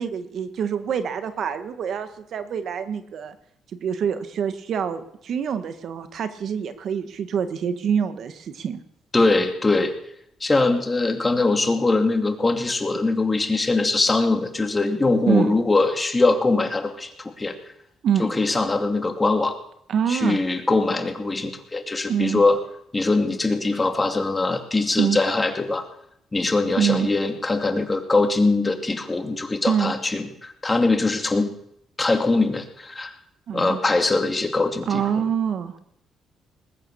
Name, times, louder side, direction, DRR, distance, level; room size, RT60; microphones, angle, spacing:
voice 1, 0.0-3.3 3.7-8.8 15.3-15.5 18.0-18.3 19.9-20.4 22.1-22.4 25.0-25.2 26.8-27.1 29.7-29.9 33.5-33.8 34.9-35.8, right 8 dB, 65° right, 11 dB, 1.4 m, -25 dB
voice 2, 9.1-9.9 10.4-17.6 18.2-19.6 20.1-22.6 22.9-25.8 26.3-31.5 32.0-33.1 33.5-35.0, left 3 dB, 20° left, 5 dB, 2.5 m, -22 dB
20.5 x 9.2 x 6.9 m, 0.72 s
cardioid pair, 90°, 0 cm